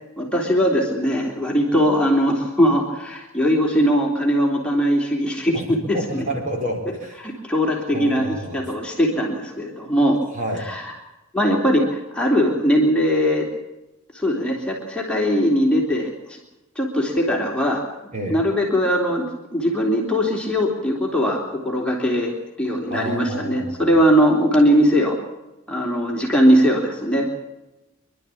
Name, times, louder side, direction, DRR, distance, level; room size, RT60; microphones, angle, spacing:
voice 1, 0.2-5.8 6.1-6.2 7.2-10.2 10.7-10.9 11.3-13.5 14.1-16.4 16.8-17.8 18.3-25.2 25.7-27.3, equal, 5° left, -2 dB, 3.5 m, -20 dB
voice 2, 5.9-7.2 7.9-8.7 10.3-10.7 18.1-18.4 22.9-23.9, right 1 dB, 40° right, 2 dB, 4.7 m, -29 dB
26.5 x 12.0 x 8.6 m, 0.99 s
head